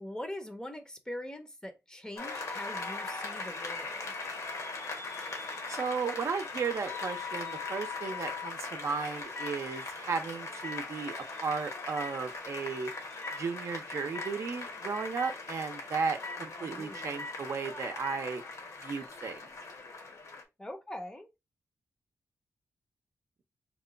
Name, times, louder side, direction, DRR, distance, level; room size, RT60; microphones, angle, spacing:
voice 1, 0.0-4.1 16.6-17.1 20.6-21.3, left 1 dB, 10° left, 0.6 m, -42 dB
Applause, 2.2-20.4, left 3 dB, 65° left, 1.0 m, -40 dB
voice 2, 5.7-12.9 13.3-18.4 18.8-19.4, right 5 dB, 60° right, 0.6 m, -35 dB
sound 1, 6.7-8.5 9.3-9.5 10.6-10.8 11.9-12.1 13.2-13.4 13.9-14.3 14.9-15.3 16.0-16.4 16.9-17.4 17.8-18.2, left 5 dB, 45° left, 0.7 m, -41 dB
3.0 x 2.2 x 3.7 m
wide cardioid pair, 100°, 6 cm